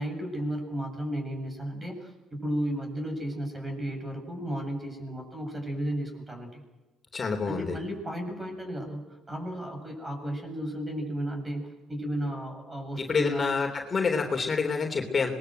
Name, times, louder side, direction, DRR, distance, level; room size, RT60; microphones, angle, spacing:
voice 1, 0.0-6.6 7.5-13.6, right 1 dB, 20° right, 4 dB, 7.8 m, -34 dB
voice 2, 7.1-7.8 13.0-15.3, left 5 dB, 35° left, 3 dB, 3.3 m, -27 dB
25.5 x 20.5 x 7.9 m, 1.1 s
cardioid pair, 85°, 0 cm